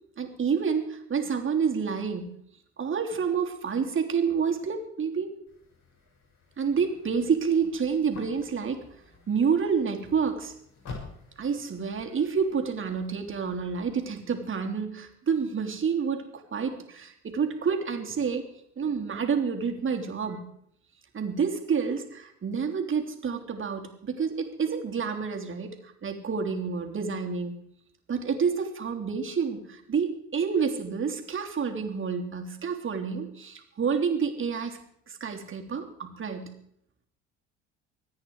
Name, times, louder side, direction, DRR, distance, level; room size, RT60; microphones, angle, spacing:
voice 1, 0.2-2.4 2.8-5.3 6.6-8.8 9.3-10.5 11.4-18.5 18.8-20.5 21.1-27.6 28.1-34.8 35.1-36.5, right 6 dB, 35° right, 4 dB, 3.4 m, -29 dB
sound 1, 5.5-14.0, left 4 dB, 55° left, 6.5 m, -49 dB
25.0 x 9.7 x 4.8 m, 0.68 s
hypercardioid pair, 70°, 33 cm